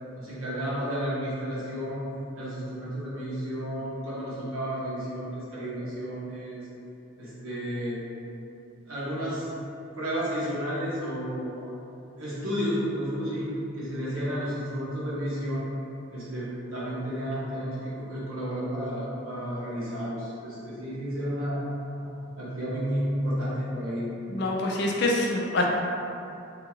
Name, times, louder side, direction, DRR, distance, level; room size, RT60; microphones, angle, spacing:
voice 1, 0.2-2.0 2.4-6.7 7.2-8.0 8.9-9.5 10.0-11.6 12.2-15.7 16.1-21.6 22.0-22.1 22.3-24.1, equal, 90° right, -9 dB, 1.1 m, -32 dB
voice 2, 24.3-25.7, left 2 dB, 55° left, -1 dB, 0.4 m, -25 dB
3.4 x 2.3 x 3.1 m, 2.7 s
head